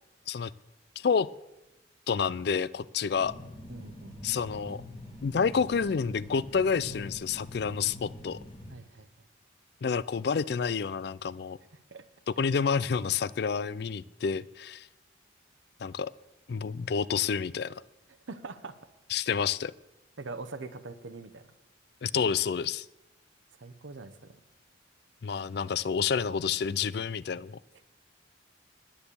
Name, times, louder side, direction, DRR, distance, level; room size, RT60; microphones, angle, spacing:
voice 1, 1.0-1.3 2.1-3.3 4.2-4.8 5.2-8.4 9.8-11.6 12.3-14.9 15.8-16.1 16.5-17.7 19.1-19.7 22.0-22.9 25.2-27.6, left 6 dB, 55° left, 19 dB, 0.4 m, -29 dB
sound 1, 3.1-8.7, left 1 dB, 30° left, 2.0 m, -45 dB
voice 2, 3.7-4.1 8.7-9.1 11.9-12.0 18.3-18.8 20.2-21.4 23.6-24.1, right 3 dB, 80° right, 10 dB, 0.9 m, -42 dB
10.0 x 10.0 x 6.9 m, 0.95 s
head